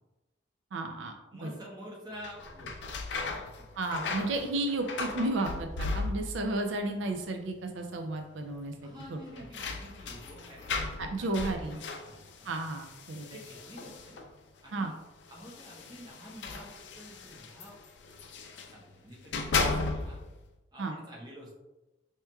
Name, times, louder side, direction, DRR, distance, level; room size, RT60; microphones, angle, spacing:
voice 1, 0.7-1.2 1.4-1.6 3.8-9.4 11.0-11.8 12.4-13.3 14.7-14.9 20.8-20.9, right 2 dB, 85° right, 4 dB, 0.4 m, -33 dB
voice 2, 1.3-3.7 8.8-11.4 11.7-12.5 13.3-14.2 14.6-14.9 15.3-17.8 18.7-20.2 20.7-21.5, equal, 25° right, -4 dB, 0.9 m, -49 dB
sound 1, 2.1-6.6 6.8-7.5 7.8-7.9 9.0-14.4 15.3-18.8 19.2-20.3, left 3 dB, 70° left, 0.4 m, -36 dB
4.5 x 2.9 x 2.2 m, 1.1 s
head